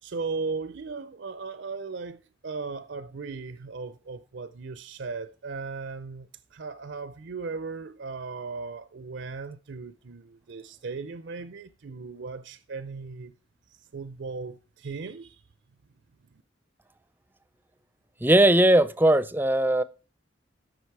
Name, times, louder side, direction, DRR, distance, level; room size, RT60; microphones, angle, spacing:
voice 1, 0.0-13.3 13.7-15.4, right 4 dB, 65° right, 0.5 m, -37 dB
voice 2, 18.2-19.8, right 1 dB, 10° right, 0.5 m, -19 dB
13.0 x 6.1 x 4.7 m
head